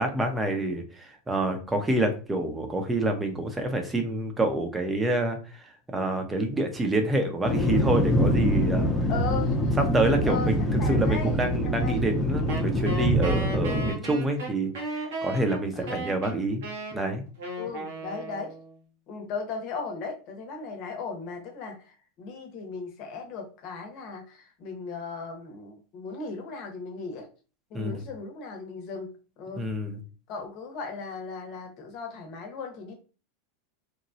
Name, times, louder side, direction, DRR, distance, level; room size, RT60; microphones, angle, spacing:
voice 1, 0.0-8.9 9.9-16.6 16.9-17.2 27.7-28.0 29.6-30.0, right 1 dB, 15° right, 5 dB, 0.7 m, -27 dB
sound 1, 7.4-13.9, equal, 20° left, 0.8 m, -25 dB
voice 2, 9.1-9.7 10.2-12.0 15.7-16.0 17.6-18.5 19.1-27.3 27.7-29.1 29.4-29.7 30.3-32.9, left 4 dB, 55° left, 3 dB, 0.9 m, -37 dB
Wind instrument woodwind instrument, 12.5-18.8, right 2 dB, 80° right, 1.0 m, -35 dB
3.0 x 2.2 x 2.6 m, 0.35 s
hypercardioid pair, 110°, 0 cm